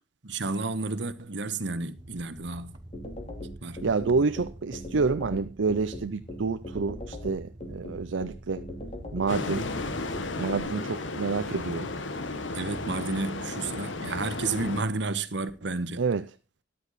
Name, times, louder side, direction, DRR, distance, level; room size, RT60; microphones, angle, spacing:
voice 1, 0.2-2.7 3.6-3.8 4.2-4.3 12.5-16.0, right 3 dB, 65° right, 1.2 m, -31 dB
sound 1, 2.0-10.5, right 1 dB, 25° right, 1.1 m, -47 dB
sound 2, 2.9-10.6, left 1 dB, 35° left, 3.0 m, -39 dB
voice 2, 3.8-8.6 9.1-9.7 10.4-11.9 16.0-16.3, right 4 dB, 85° right, 0.6 m, -28 dB
sound 3, 9.3-14.8, left 2 dB, 80° left, 1.3 m, -34 dB
13.0 x 10.5 x 4.1 m
head